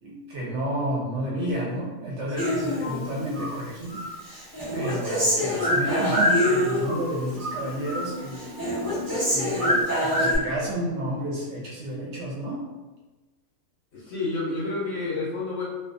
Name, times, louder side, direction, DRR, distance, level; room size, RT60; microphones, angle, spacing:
voice 1, 0.0-4.0 4.7-8.4 9.3-12.7, right 1 dB, 65° right, -5 dB, 0.8 m, -31 dB
Human voice, 2.4-3.5 3.9-7.1 7.4-8.1 8.4-10.4, left 1 dB, 20° right, 0.7 m, -25 dB
sound 1, 4.7-9.8, left 2 dB, 20° left, 0.7 m, -40 dB
voice 2, 13.9-15.6, left 3 dB, 60° left, -6 dB, 0.7 m, -30 dB
2.3 x 2.2 x 2.4 m, 1.2 s
omnidirectional pair, 1.5 m